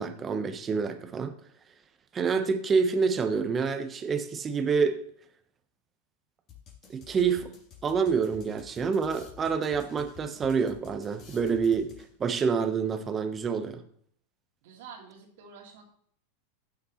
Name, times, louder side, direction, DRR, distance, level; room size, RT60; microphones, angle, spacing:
voice 1, 0.0-1.3 2.1-5.0 6.9-7.5 7.8-11.9 12.2-13.8, right 5 dB, 25° right, 8 dB, 1.2 m, -27 dB
sound 1, 6.5-12.3, left 8 dB, 40° left, 3.4 m, -51 dB
voice 2, 14.6-15.9, right 6 dB, 70° right, 2 dB, 2.6 m, -48 dB
15.5 x 6.5 x 3.2 m, 0.63 s
hypercardioid pair, 110°, 0 cm